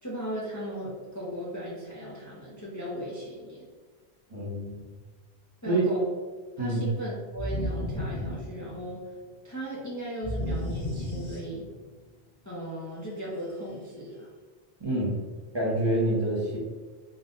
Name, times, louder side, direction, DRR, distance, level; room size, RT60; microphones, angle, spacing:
voice 1, 0.0-3.7 5.6-6.1 6.6-9.1 9.4-11.7 12.4-14.3, equal, 20° left, -7 dB, 0.8 m, -37 dB
voice 2, 4.3-4.8 5.7-5.8 6.6-6.8 14.8-15.1 15.5-16.6, right 1 dB, 25° right, -7 dB, 1.0 m, -27 dB
sound 1, 7.4-9.1 10.2-11.9, equal, 40° left, 1.6 m, -33 dB
3.9 x 2.4 x 3.8 m, 1.4 s
omnidirectional pair, 1.1 m